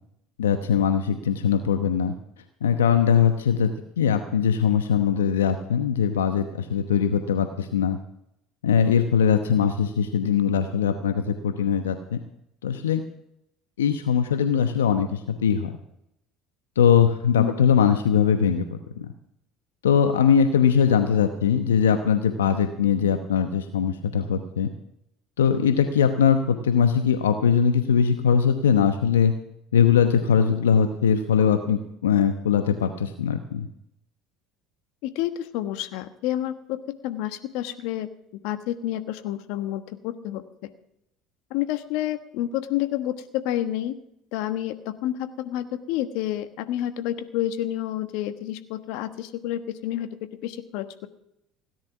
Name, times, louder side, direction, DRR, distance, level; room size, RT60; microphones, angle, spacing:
voice 1, 0.4-2.1 2.6-3.7 4.0-8.0 8.6-12.2 12.6-13.0 13.8-15.7 16.8-19.1 19.8-24.7 25.4-29.3 29.7-33.7, left 7 dB, 85° left, 8 dB, 0.9 m, -21 dB
voice 2, 35.0-36.8 37.0-38.1 38.3-40.7 41.5-44.0 44.3-50.1 50.4-51.1, left 13 dB, 65° left, 10 dB, 1.2 m, -29 dB
17.0 x 10.5 x 6.0 m, 0.79 s
hypercardioid pair, 70°, 0 cm